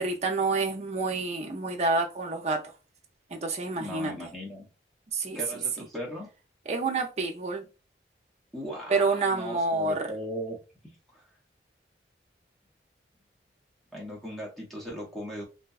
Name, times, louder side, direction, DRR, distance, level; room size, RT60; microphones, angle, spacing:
voice 1, 0.0-2.6 3.3-4.1 5.1-5.4 6.7-7.7 8.9-10.1, right 3 dB, 35° right, 0.5 m, -28 dB
voice 2, 3.8-4.7 5.3-6.3 8.5-11.2 13.9-15.4, equal, ahead, 0.7 m, -38 dB
2.7 x 2.2 x 2.3 m
head